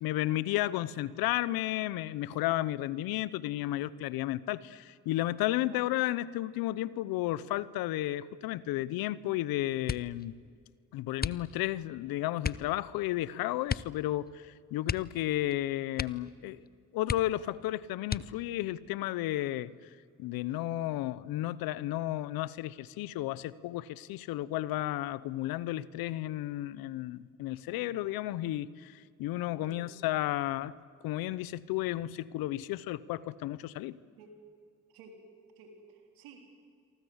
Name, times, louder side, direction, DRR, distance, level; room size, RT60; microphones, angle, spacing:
voice 1, 0.0-10.3 10.9-16.6 16.9-19.9 20.2-30.7 31.0-34.0, left 15 dB, 85° left, 19 dB, 0.8 m, -33 dB
sound 1, 9.8-10.3 11.2-11.8 12.4-12.7 13.7-14.0 14.3-14.4 14.8-15.6 15.9-16.4 16.7-16.8 17.0-17.6 18.0-18.6 19.3-19.9 20.3-20.7, left 6 dB, 25° left, 0.8 m, -36 dB
voice 2, 34.9-35.3 35.6-36.4, right 4 dB, 90° right, 3 dB, 3.9 m, -53 dB
28.0 x 24.0 x 8.1 m, 2.1 s
supercardioid pair, 50°, 35 cm